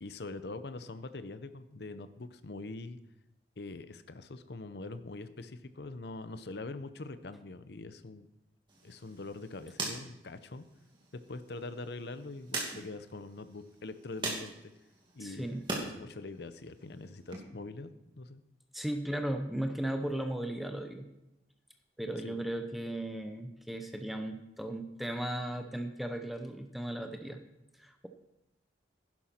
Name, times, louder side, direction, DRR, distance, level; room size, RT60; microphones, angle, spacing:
voice 1, 0.0-3.0 3.6-8.3 8.8-10.6 11.1-14.5 15.1-17.9 18.2-18.4 22.2-22.4, left 2 dB, 65° left, 11 dB, 0.7 m, -43 dB
sound 1, 8.7-15.9 16.3-17.4, right 3 dB, 25° right, 2.4 m, -42 dB
voice 2, 15.2-15.7 18.7-21.1 22.0-27.4 27.8-28.1, right 1 dB, ahead, 5 dB, 0.7 m, -36 dB
11.5 x 11.0 x 4.4 m, 0.90 s
head